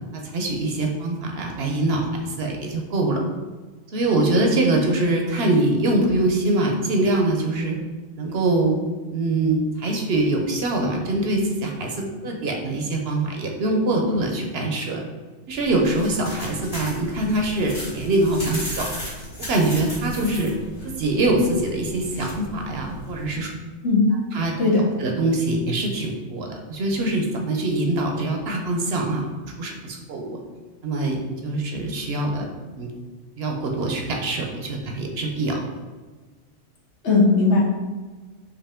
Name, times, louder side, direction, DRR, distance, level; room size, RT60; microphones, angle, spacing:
voice 1, 0.2-3.2 3.9-7.8 8.2-8.8 9.1-15.0 15.5-18.9 19.5-20.5 20.8-23.5 24.3-24.5 25.0-29.3 29.6-30.4 30.8-32.5 32.8-32.9 33.4-35.6, right 2 dB, 65° right, 1 dB, 0.9 m, -23 dB
sound 1, 15.5-23.4, left 1 dB, 40° left, 1.8 m, -36 dB
voice 2, 37.0-37.6, left 3 dB, 75° left, -5 dB, 1.5 m, -18 dB
4.8 x 2.9 x 3.6 m, 1.3 s
omnidirectional pair, 1.2 m